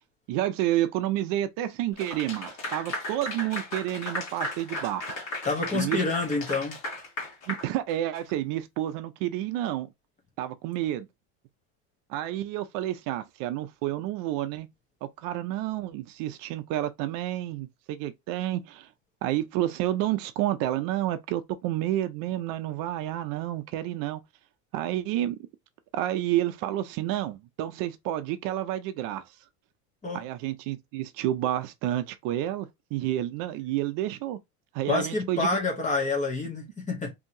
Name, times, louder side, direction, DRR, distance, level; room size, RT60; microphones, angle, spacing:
voice 1, 0.3-5.0 5.7-6.0 7.5-9.9 10.4-11.1 12.1-14.7 15.0-18.9 19.2-24.2 24.7-25.4 25.9-29.2 30.1-34.4 34.7-35.6, right 13 dB, 50° right, 0.6 m, -30 dB
Clapping / Applause, 2.0-8.3, left 1 dB, 40° left, 1.7 m, -36 dB
voice 2, 5.4-6.8 30.0-30.2 34.9-37.1, left 3 dB, 15° left, 0.7 m, -28 dB
2.8 x 2.7 x 2.6 m
supercardioid pair, 140°, 42 cm